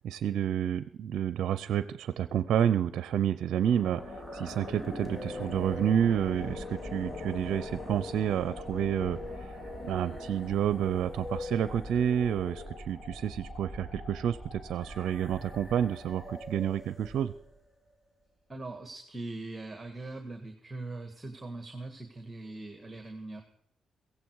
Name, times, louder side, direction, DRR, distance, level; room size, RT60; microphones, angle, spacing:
voice 1, 0.0-17.3, right 9 dB, 70° right, 14 dB, 0.5 m, -29 dB
sound 1, 3.5-17.6, left 2 dB, 25° left, 2.6 m, -41 dB
voice 2, 18.5-23.4, right 2 dB, 20° right, 5 dB, 1.7 m, -41 dB
16.0 x 15.0 x 4.7 m, 0.69 s
cardioid pair, 90°, 0 cm